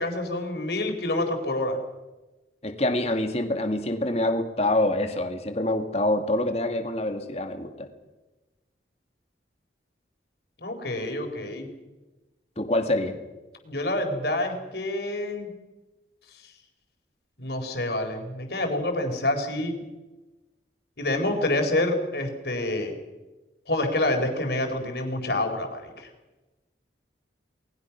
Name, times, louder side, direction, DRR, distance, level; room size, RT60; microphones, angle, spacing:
voice 1, 0.0-1.8 10.6-11.7 13.6-15.5 17.4-19.8 21.0-23.0 23.7-26.1, left 1 dB, 60° left, 4 dB, 4.2 m, -27 dB
voice 2, 2.6-7.9 12.6-13.1, left 1 dB, 35° left, 6 dB, 2.3 m, -26 dB
29.0 x 20.5 x 6.0 m, 1.1 s
head